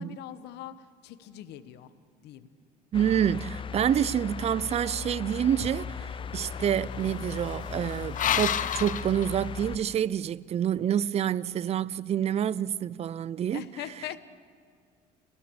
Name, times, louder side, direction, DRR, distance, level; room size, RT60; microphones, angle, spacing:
voice 1, 0.0-1.9 2.2-2.5 13.5-14.2, left 11 dB, 80° left, 1.2 m, -41 dB
sound 1, 2.9-9.8, left 6 dB, 30° left, 0.5 m, -38 dB
voice 2, 2.9-13.6, right 9 dB, 40° right, 0.5 m, -28 dB
sound 2, 5.6-9.9, left 10 dB, 50° left, 0.8 m, -33 dB
29.5 x 15.5 x 7.0 m
cardioid pair, 110°, 17 cm